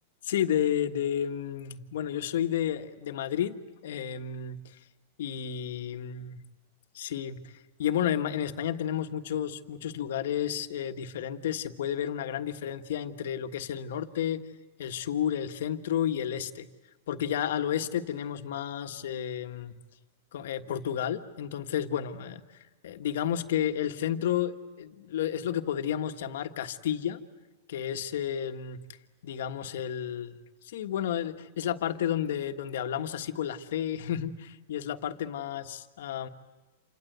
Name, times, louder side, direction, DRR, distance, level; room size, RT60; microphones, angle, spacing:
voice 1, 0.2-3.5 3.8-4.6 5.2-6.4 6.9-7.4 7.8-14.4 14.8-16.7 17.1-19.7 20.3-22.4 22.8-27.2 27.7-28.8 29.2-30.4 30.6-36.3, left 10 dB, 75° left, 7 dB, 1.4 m, -31 dB
28.0 x 25.5 x 8.0 m, 1.1 s
supercardioid pair, 155°, 0 cm